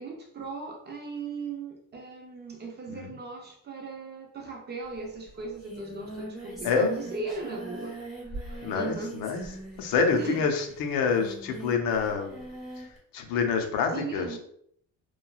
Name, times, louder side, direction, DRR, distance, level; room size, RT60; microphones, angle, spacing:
voice 1, 0.0-8.0 8.7-9.2 10.1-10.5 13.9-14.4, right 4 dB, 30° right, 1 dB, 0.4 m, -37 dB
Singing, 4.9-5.0 5.3-13.0, right 1 dB, ahead, 0.9 m, -42 dB
voice 2, 8.6-9.4 9.8-12.4 12.8-12.9 13.1-14.3, left 5 dB, 75° left, 4 dB, 0.6 m, -27 dB
3.0 x 2.3 x 2.3 m, 0.68 s
cardioid pair, 150°, 35 cm